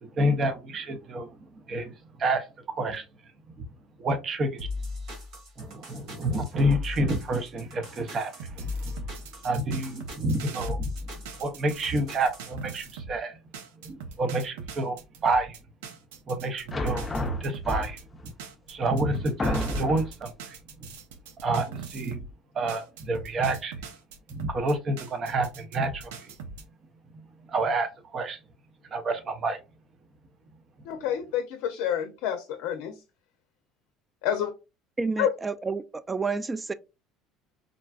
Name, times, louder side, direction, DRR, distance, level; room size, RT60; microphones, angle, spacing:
voice 1, 0.0-3.0 3.6-3.7 4.0-4.7 5.6-9.1 9.4-10.9 11.4-13.4 13.8-15.6 16.3-17.1 17.4-18.3 18.7-20.9 21.4-22.2 22.5-23.8 24.3-26.3 27.5-28.4 28.9-29.6, right 2 dB, 45° right, 0.7 m, -29 dB
sound 1, 4.6-12.5, left 3 dB, 70° right, 1.1 m, -37 dB
sound 2, 8.4-13.2 13.5-22.3 22.7-26.6, right 5 dB, 90° right, 0.5 m, -42 dB
sound 3, 16.7-18.2 18.9-19.0 19.4-20.2, left 1 dB, 20° left, 0.6 m, -29 dB
voice 2, 30.9-32.9 34.2-34.5 35.2-35.3, left 10 dB, 75° left, 0.5 m, -28 dB
voice 3, 35.0-36.7, right 4 dB, 20° right, 0.3 m, -30 dB
3.8 x 2.2 x 2.3 m
supercardioid pair, 90°, 0 cm